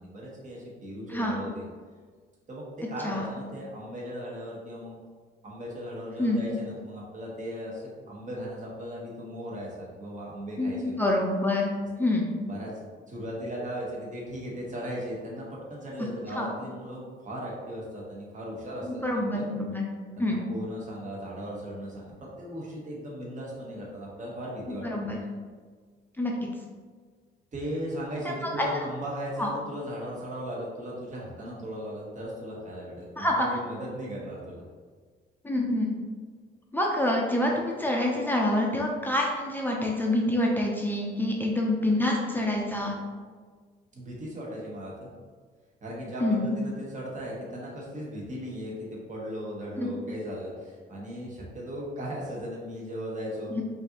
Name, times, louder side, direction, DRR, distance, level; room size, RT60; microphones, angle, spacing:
voice 1, 0.0-1.6 2.5-5.0 5.4-11.0 12.4-12.7 13.1-19.5 20.2-24.9 27.5-34.6 43.9-45.1 45.8-53.5, equal, 40° right, -4 dB, 1.2 m, -37 dB
voice 2, 1.1-1.4 3.0-3.3 6.2-6.5 10.6-11.7 12.0-12.3 16.3-16.5 18.8-19.8 20.2-20.5 24.8-25.2 26.2-26.4 28.2-28.9 29.4-29.5 33.2-33.5 35.4-35.9 36.7-42.9 46.2-46.5 49.8-49.9 53.5-53.6, left 1 dB, 10° left, -1 dB, 0.6 m, -27 dB
5.0 x 2.7 x 2.9 m, 1.6 s
cardioid pair, 90°, 20 cm